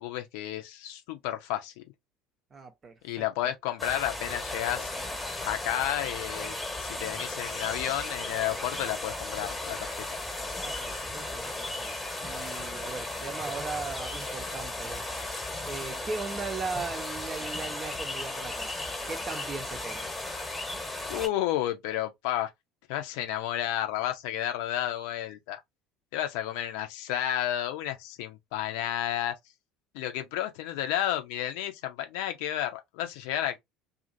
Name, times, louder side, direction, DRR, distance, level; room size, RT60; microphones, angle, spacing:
voice 1, 0.0-1.8 3.0-4.9 5.4-10.1 21.1-22.5 22.9-25.6 26.1-29.3 29.9-33.6, left 12 dB, 65° left, 0.6 m, -31 dB
voice 2, 2.5-3.5 10.5-15.0 15.7-18.8 19.1-20.1, right 4 dB, 30° right, 0.8 m, -38 dB
sound 1, 3.8-21.3, left 2 dB, 10° left, 1.1 m, -35 dB
2.8 x 2.6 x 2.5 m
figure-of-eight pair, 65°, 0 cm